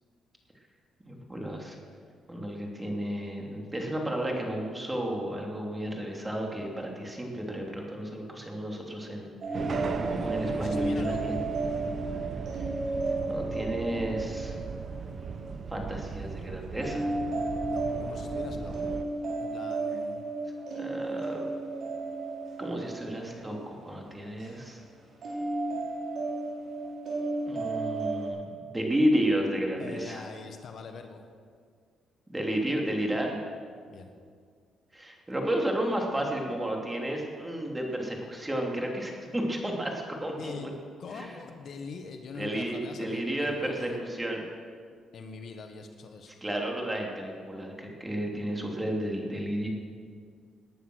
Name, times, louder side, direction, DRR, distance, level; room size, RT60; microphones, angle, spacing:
voice 1, 1.0-1.8 2.3-9.7 10.2-11.4 13.3-14.6 15.7-17.1 20.7-21.4 22.6-24.8 27.4-30.3 32.3-33.4 34.9-40.7 41.1-41.3 42.3-44.5 46.4-49.7, right 1 dB, 15° right, 0 dB, 3.2 m, -32 dB
sound 1, 9.4-16.2 16.8-24.5 25.2-28.3, right 2 dB, 60° right, 5.5 m, -33 dB
sound 2, 9.5-19.0, right 5 dB, 45° right, 1.0 m, -37 dB
voice 2, 10.1-11.4 17.7-18.9 19.3-20.2 29.8-31.2 33.9-34.1 40.4-44.0 45.1-46.3, left 4 dB, 60° left, 6 dB, 1.4 m, -43 dB
19.5 x 9.8 x 6.4 m, 2.1 s
cardioid pair, 90°, 0 cm